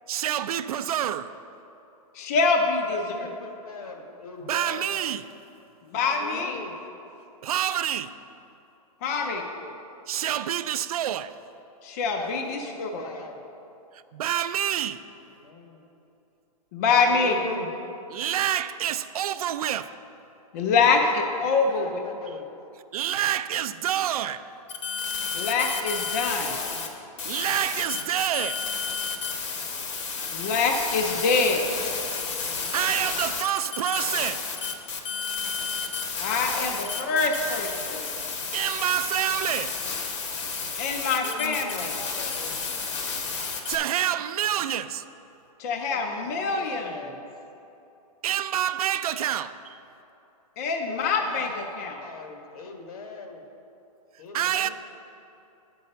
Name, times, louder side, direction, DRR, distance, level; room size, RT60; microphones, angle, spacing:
voice 1, 0.1-1.3 4.4-5.2 7.4-8.1 10.1-11.3 13.9-15.0 18.1-19.9 22.9-24.4 27.2-28.6 32.7-34.5 38.5-39.8 43.7-45.0 48.2-49.8 54.3-54.7, right 10 dB, 70° right, 0.4 m, -27 dB
voice 2, 2.2-3.0 5.9-6.6 9.0-9.4 12.0-13.0 16.7-17.4 20.5-21.0 21.4-21.9 25.3-26.5 30.3-31.6 36.2-38.0 40.8-42.0 45.6-47.0 50.6-52.0, left 4 dB, 25° left, 0.4 m, -25 dB
voice 3, 2.9-5.0 5.9-6.7 9.1-9.8 12.2-13.4 15.3-15.9 16.9-17.7 20.9-22.5 25.5-26.1 26.4-26.9 30.5-31.1 31.3-31.9 32.4-33.1 36.4-38.2 41.2-42.6 45.9-47.3 50.9-53.4 54.2-54.7, left 3 dB, 70° left, 1.4 m, -41 dB
sound 1, 24.7-26.9 27.2-43.8, left 5 dB, 50° left, 1.0 m, -31 dB
8.1 x 5.3 x 6.8 m
hypercardioid pair, 170°, 20 cm